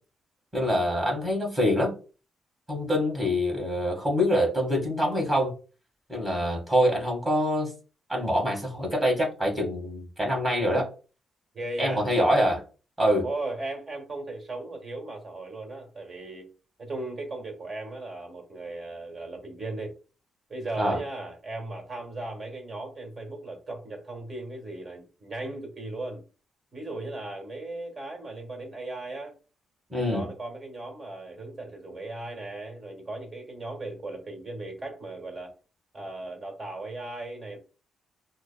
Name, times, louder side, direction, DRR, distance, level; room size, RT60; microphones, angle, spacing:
voice 1, 0.5-2.0 2.7-5.5 6.1-7.7 8.1-10.9 11.8-12.6 13.0-13.3 20.8-21.0 29.9-30.3, equal, 15° right, 1.9 m, -25 dB
voice 2, 11.5-12.1 13.2-16.5 16.8-19.9 20.5-26.2 26.7-29.3 29.9-35.5 35.9-37.6, right 2 dB, 40° right, 1.6 m, -37 dB
6.0 x 2.2 x 2.3 m
cardioid pair, 95°, 0 cm